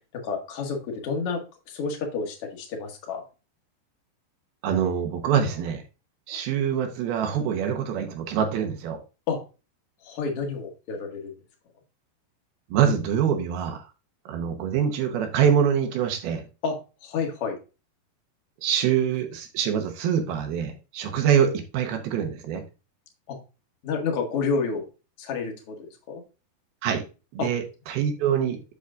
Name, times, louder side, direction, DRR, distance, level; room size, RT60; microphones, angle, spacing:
voice 1, 0.1-3.2 9.3-9.4 10.0-11.3 16.6-17.6 23.3-23.4 23.8-24.9 25.2-26.2 27.4-27.5, left 5 dB, 50° left, 2 dB, 1.9 m, -30 dB
voice 2, 4.6-5.8 6.3-9.0 12.7-13.8 14.3-16.4 18.6-22.6 26.8-27.0 27.3-28.6, right 8 dB, 70° right, 5 dB, 2.7 m, -24 dB
8.2 x 7.1 x 2.5 m, 0.31 s
omnidirectional pair, 4.8 m